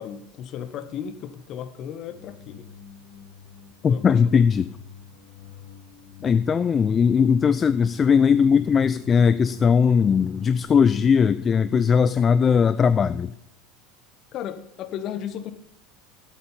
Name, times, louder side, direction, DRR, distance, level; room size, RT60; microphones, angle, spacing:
voice 1, 0.0-2.7 3.8-4.3 14.3-15.5, left 9 dB, 45° left, 11 dB, 1.1 m, -35 dB
sound 1, 2.1-10.9, left 8 dB, 85° left, 3.7 m, -46 dB
voice 2, 3.8-4.7 6.2-13.3, left 6 dB, 30° left, 14 dB, 0.4 m, -19 dB
12.0 x 8.3 x 5.7 m, 0.78 s
figure-of-eight pair, 75°, 0 cm